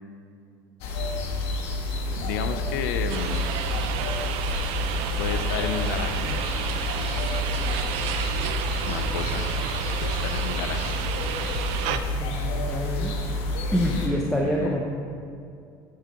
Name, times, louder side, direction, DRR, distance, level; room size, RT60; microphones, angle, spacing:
sound 1, 0.8-14.1, left 2 dB, 70° left, 1.2 m, -29 dB
voice 1, 2.1-3.5 5.2-6.4 8.8-9.5 10.0-10.9 13.9-14.8, left 7 dB, 90° left, 8 dB, 0.5 m, -32 dB
sound 2, 3.1-12.0, right 10 dB, 70° right, 0.5 m, -31 dB
voice 2, 11.9-13.2 13.7-14.8, equal, 5° left, -3 dB, 0.8 m, -27 dB
9.3 x 4.7 x 5.1 m, 2.4 s
supercardioid pair, 115°, 10 cm